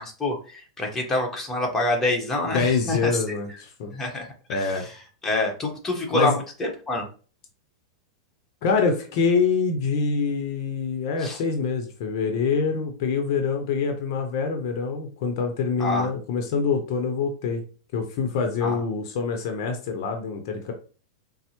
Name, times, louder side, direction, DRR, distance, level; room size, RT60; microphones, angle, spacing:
voice 1, 0.0-3.1 3.9-4.9 5.2-7.1 11.2-11.4 15.8-16.1 18.6-18.8, left 2 dB, 15° left, 0 dB, 1.0 m, -26 dB
voice 2, 2.5-3.9 4.5-4.8 6.1-6.4 8.6-17.6 17.9-20.7, left 5 dB, 60° left, 5 dB, 0.6 m, -25 dB
4.1 x 2.0 x 2.9 m, 0.38 s
hypercardioid pair, 120°, 2 cm